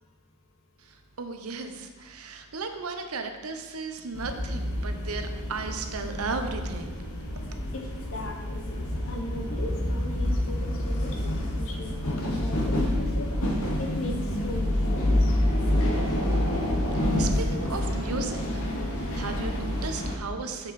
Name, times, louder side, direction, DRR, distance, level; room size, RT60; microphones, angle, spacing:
voice 1, 1.2-6.9 16.9-20.7, right 4 dB, 85° right, 6 dB, 0.8 m, -35 dB
sound 1, 4.1-20.1, left 1 dB, 85° left, 1.3 m, -28 dB
voice 2, 8.1-13.3 13.8-14.1 14.4-15.3, left 1 dB, 65° left, 2 dB, 1.2 m, -38 dB
7.1 x 7.0 x 4.2 m, 1.3 s
head